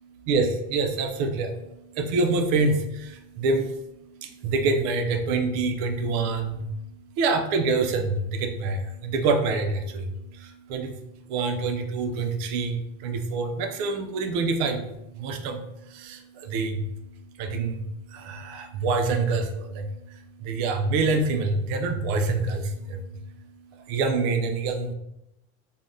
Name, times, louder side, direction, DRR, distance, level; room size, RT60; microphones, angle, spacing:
voice 1, 0.0-24.9, right 3 dB, 55° right, 5 dB, 0.4 m, -27 dB
3.3 x 2.1 x 2.5 m, 0.85 s
supercardioid pair, 150°, 37 cm